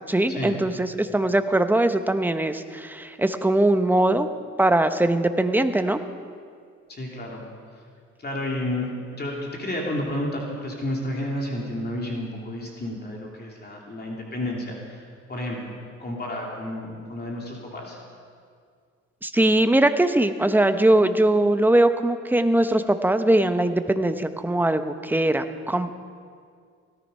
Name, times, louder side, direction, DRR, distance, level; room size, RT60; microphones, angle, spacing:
voice 1, 0.1-4.3 4.6-6.0 19.2-25.9, right 1 dB, 5° right, 9 dB, 0.8 m, -21 dB
voice 2, 6.9-7.4 8.2-15.7 16.0-18.0, left 1 dB, 35° left, -2 dB, 2.9 m, -31 dB
17.5 x 13.5 x 5.4 m, 2.1 s
cardioid pair, 90°, 30 cm